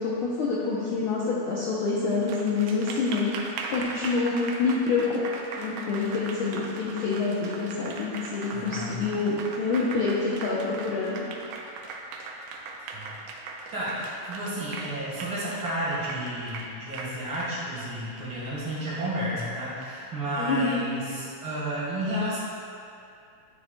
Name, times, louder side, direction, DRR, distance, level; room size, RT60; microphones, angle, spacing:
voice 1, 0.0-3.3 3.7-5.2 5.5-11.2 20.4-20.8, left 4 dB, 75° left, -6 dB, 1.2 m, -27 dB
Applause, 2.1-19.9, right 3 dB, 90° right, 2.0 m, -39 dB
voice 2, 8.5-9.1 12.9-13.2 13.7-22.4, right 1 dB, 50° right, -8 dB, 2.1 m, -32 dB
9.6 x 7.0 x 2.2 m, 2.4 s
omnidirectional pair, 3.3 m